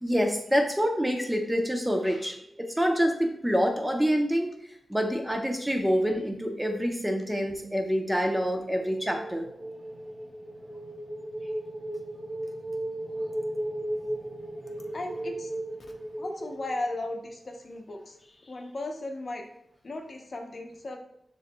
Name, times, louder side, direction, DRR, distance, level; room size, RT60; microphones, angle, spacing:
voice 1, 0.0-4.5 4.9-9.4, equal, 10° right, 3 dB, 0.8 m, -26 dB
sound 1, 8.7-17.4, right 1 dB, 80° right, 0.9 m, -36 dB
voice 2, 14.9-15.5 16.2-19.5 19.8-21.0, left 2 dB, 55° left, 3 dB, 0.7 m, -36 dB
6.4 x 3.1 x 2.2 m, 0.76 s
cardioid pair, 55°, 0 cm